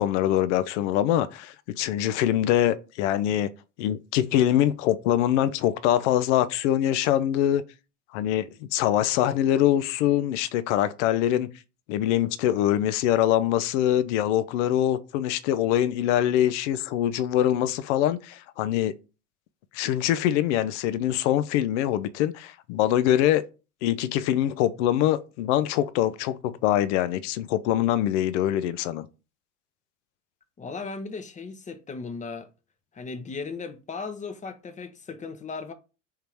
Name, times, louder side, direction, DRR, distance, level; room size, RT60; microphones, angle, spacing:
voice 1, 0.0-3.5 3.8-7.6 8.1-11.5 11.9-19.0 19.7-23.4 23.8-29.1, left 12 dB, 65° left, 0.5 m, -24 dB
voice 2, 30.6-32.5 32.9-35.7, left 4 dB, 20° left, 0.7 m, -36 dB
3.6 x 2.8 x 4.5 m
hypercardioid pair, 75°, 38 cm